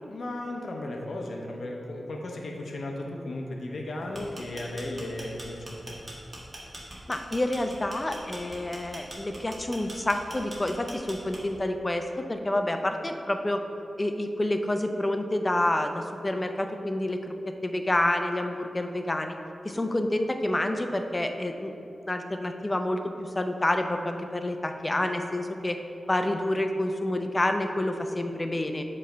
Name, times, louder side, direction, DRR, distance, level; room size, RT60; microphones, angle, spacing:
voice 1, 0.1-6.0, left 1 dB, 70° left, 0 dB, 0.7 m, -35 dB
sound 1, 4.0-11.7, right 1 dB, 35° right, 1.4 m, -42 dB
voice 2, 7.1-13.6 14.0-17.3 17.6-19.4 19.6-21.7 22.1-25.8 26.1-28.9, left 1 dB, 25° left, 6 dB, 0.5 m, -28 dB
7.9 x 3.2 x 5.0 m, 2.9 s
cardioid pair, 70°, 0 cm